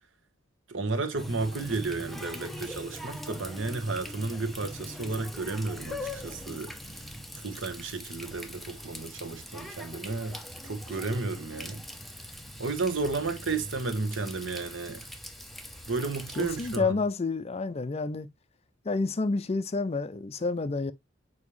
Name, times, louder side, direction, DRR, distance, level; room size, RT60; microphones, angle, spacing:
voice 1, 0.7-6.7 7.4-10.4 10.6-11.8 12.6-15.1 15.9-17.0, right 3 dB, 90° right, 1.4 m, -32 dB
Water tap faucet, 1.2-16.8, left 1 dB, ahead, 0.9 m, -42 dB
voice 2, 16.4-18.3 18.8-20.9, left 3 dB, 35° left, 0.5 m, -29 dB
7.3 x 4.7 x 3.2 m
head